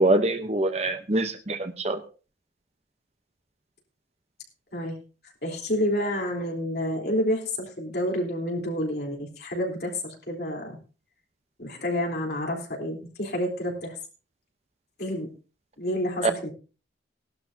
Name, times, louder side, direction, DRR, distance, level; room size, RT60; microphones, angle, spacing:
voice 1, 0.0-2.0 16.2-16.3, right 2 dB, 35° right, 8 dB, 0.9 m, -24 dB
voice 2, 5.4-10.8 11.6-13.9 15.0-15.3 15.8-16.5, equal, 55° left, 0 dB, 3.7 m, -29 dB
17.5 x 12.0 x 2.8 m, 0.35 s
head